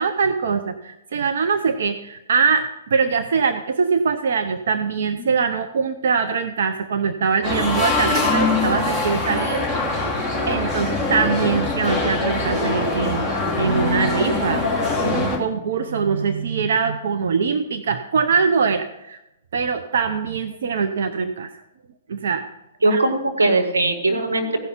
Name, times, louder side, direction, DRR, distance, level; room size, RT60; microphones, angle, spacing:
voice 1, 0.0-9.7 10.5-13.3 13.6-14.6 15.0-19.2 19.5-21.5 22.1-22.5 22.9-23.0, right 5 dB, 70° right, 8 dB, 0.7 m, -22 dB
sound 1, 7.4-15.4, left 3 dB, 25° right, 2.9 m, -23 dB
voice 2, 22.8-24.7, right 2 dB, 90° right, 4 dB, 1.8 m, -20 dB
16.0 x 5.6 x 5.9 m, 0.91 s
hypercardioid pair, 125°, 0 cm